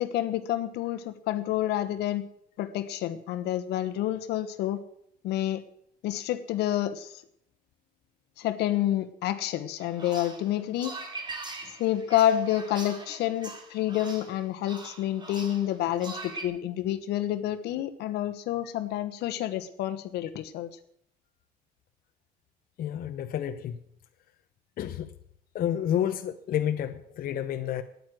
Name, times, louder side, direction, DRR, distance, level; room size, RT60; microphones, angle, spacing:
voice 1, 0.0-2.2 2.6-4.8 5.2-5.6 6.0-7.2 8.4-11.0 11.8-20.7, left 12 dB, 80° left, 10 dB, 1.2 m, -29 dB
sound 1, 9.8-16.4, right 2 dB, 25° right, 2.4 m, -42 dB
voice 2, 22.8-23.8 24.8-25.1 25.5-27.8, left 10 dB, 60° left, 8 dB, 0.8 m, -30 dB
9.4 x 9.2 x 9.3 m, 0.70 s
cardioid pair, 110°, 17 cm